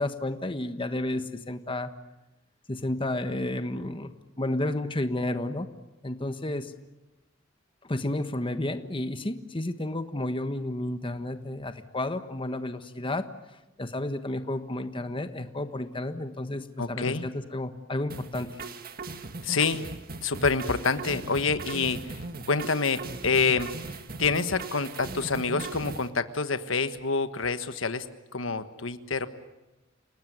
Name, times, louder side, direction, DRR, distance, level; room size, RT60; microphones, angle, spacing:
voice 1, 0.0-1.9 2.7-4.1 4.4-5.7 6.0-6.7 7.8-13.2 13.8-18.5, left 1 dB, 25° left, 9 dB, 1.3 m, -31 dB
voice 2, 16.8-17.3 19.4-19.9 20.2-22.2 22.5-23.7 24.2-28.0 28.3-29.3, left 4 dB, 80° left, 10 dB, 1.5 m, -27 dB
sound 1, 18.1-26.1, right 3 dB, 50° right, 1.8 m, -39 dB
29.5 x 19.0 x 9.4 m, 0.99 s
head